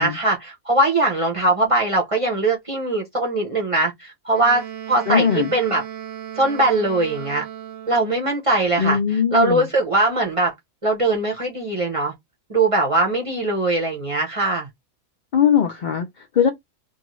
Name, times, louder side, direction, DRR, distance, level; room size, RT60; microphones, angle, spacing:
voice 1, 0.0-5.8 6.4-7.4 7.9-9.0 9.3-10.5 10.8-12.1 12.5-14.7, right 2 dB, 35° right, 0.6 m, -21 dB
Wind instrument woodwind instrument, 4.3-8.2, right 11 dB, 90° right, 1.0 m, -36 dB
voice 2, 5.1-5.5 8.8-9.7 15.3-16.5, left 8 dB, 70° left, 0.4 m, -20 dB
2.6 x 2.4 x 3.0 m
omnidirectional pair, 1.4 m